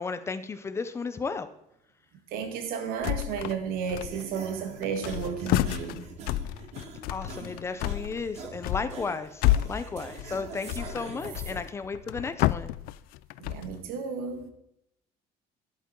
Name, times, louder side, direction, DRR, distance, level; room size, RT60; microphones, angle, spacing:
voice 1, 0.0-1.5 7.1-12.7, left 4 dB, 20° left, 0.5 m, -34 dB
voice 2, 2.3-6.1 11.2-11.4 13.4-14.5, right 6 dB, 85° right, 1.6 m, -33 dB
sound 1, 3.0-3.6 3.9-4.5 4.8-13.8, left 16 dB, 90° left, 0.4 m, -30 dB
sound 2, 4.0-11.6, right 5 dB, 50° right, 1.6 m, -44 dB
10.5 x 8.3 x 4.4 m
cardioid pair, 175°, 15 cm